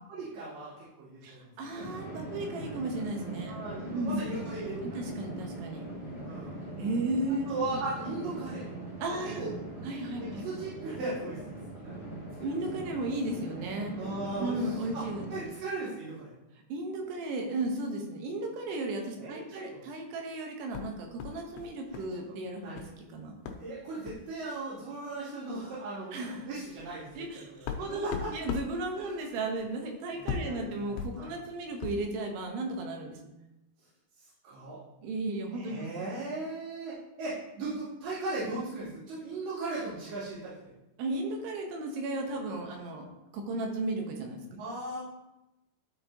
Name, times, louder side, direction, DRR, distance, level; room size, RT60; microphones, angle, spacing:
voice 1, 0.1-1.5 3.5-5.0 6.2-6.6 7.3-8.7 9.2-9.5 10.4-12.0 12.4-12.6 14.0-15.0 15.3-16.3 19.2-19.8 22.6-22.8 23.6-26.2 26.4-27.2 27.5-28.3 29.0-29.2 30.1-31.3 34.2-34.8 35.5-40.6 44.6-45.0, right 2 dB, 70° right, -14 dB, 4.6 m, -38 dB
voice 2, 1.2-3.5 3.9-4.4 5.0-5.9 6.8-7.5 9.0-9.4 9.8-10.4 12.4-14.0 14.4-15.5 16.7-23.3 26.1-26.5 27.1-33.2 35.0-35.8 41.0-44.6, right 2 dB, 85° right, 2 dB, 3.1 m, -35 dB
sound 1, 1.7-15.4, right 1 dB, 25° right, 1.0 m, -41 dB
sound 2, 20.7-22.2 22.4-23.0 23.5-23.7 24.0-24.3 25.2-25.3 25.6-25.8 26.3-32.1, left 6 dB, 90° left, 2.8 m, -40 dB
12.5 x 4.4 x 2.8 m, 0.96 s
omnidirectional pair, 4.6 m